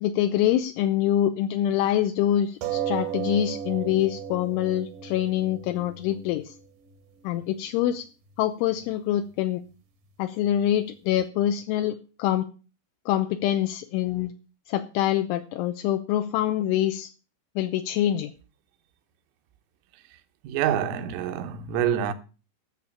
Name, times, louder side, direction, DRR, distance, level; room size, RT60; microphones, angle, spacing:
voice 1, 0.0-6.5 7.2-8.1 8.4-9.6 10.2-12.5 13.1-14.3 14.7-17.1 17.6-18.3, left 12 dB, 80° left, 3.1 m, -25 dB
sound 1, 2.6-7.6 8.4-8.5 8.8-8.9, right 10 dB, 70° right, 2.0 m, -34 dB
voice 2, 20.4-22.1, right 9 dB, 85° right, 3.7 m, -26 dB
13.0 x 6.7 x 7.3 m
omnidirectional pair, 5.7 m